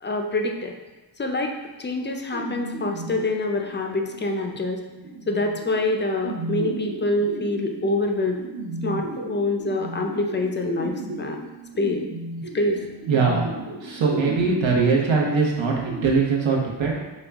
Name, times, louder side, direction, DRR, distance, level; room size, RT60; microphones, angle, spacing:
voice 1, 0.0-0.7 1.2-1.5 1.8-4.8 5.3-8.4 8.8-11.4 11.8-12.0 12.5-12.9, left 2 dB, 25° left, 3 dB, 0.3 m, -25 dB
sound 1, 2.3-16.0, right 2 dB, 60° right, 0.8 m, -35 dB
voice 2, 13.1-13.5 13.8-17.0, right 4 dB, 90° right, -2 dB, 0.9 m, -21 dB
5.2 x 2.2 x 3.4 m, 1.1 s
wide cardioid pair, 140°, 45 cm